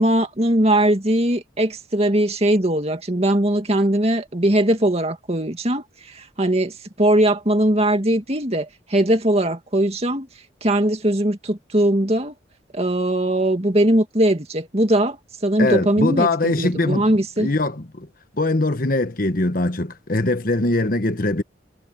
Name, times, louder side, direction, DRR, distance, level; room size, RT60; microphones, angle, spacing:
voice 1, 0.0-10.3 10.6-12.3 12.7-17.5, right 1 dB, 35° right, 2.2 m, -20 dB
voice 2, 15.6-17.1 17.4-18.1 18.4-21.4, left 2 dB, 50° left, 1.3 m, -21 dB
head